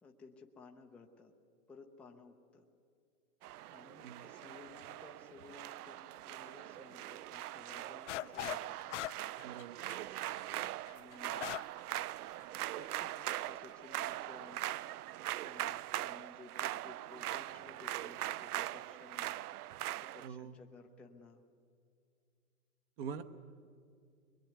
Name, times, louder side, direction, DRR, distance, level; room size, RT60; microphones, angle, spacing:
voice 1, 0.0-1.3 1.7-2.6 3.7-8.8 10.9-11.4 12.8-14.6 15.4-19.4 20.1-21.4, left 4 dB, 5° left, 0 dB, 0.7 m, -57 dB
sound 1, 3.4-20.3, right 14 dB, 80° right, 0.6 m, -41 dB
sound 2, 8.1-8.6 8.9-11.8 12.2-12.3 12.8-13.2, left 14 dB, 55° left, 0.5 m, -41 dB
voice 2, 9.4-9.8 20.2-20.5 23.0-23.2, right 7 dB, 40° right, 9 dB, 1.2 m, -44 dB
23.0 x 22.5 x 9.5 m, 2.3 s
hypercardioid pair, 160°, 44 cm